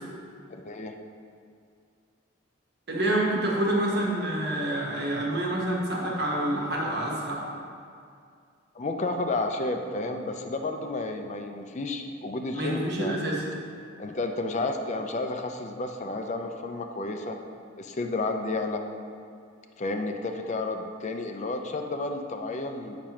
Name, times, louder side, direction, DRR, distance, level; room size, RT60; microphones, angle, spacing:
voice 1, 0.5-1.0 8.8-13.2 14.0-17.4 17.8-18.8 19.8-23.0, left 2 dB, 35° left, 5 dB, 0.4 m, -31 dB
voice 2, 2.9-7.4 12.5-13.4, right 1 dB, 55° right, -3 dB, 1.3 m, -27 dB
8.4 x 5.9 x 3.0 m, 2.4 s
head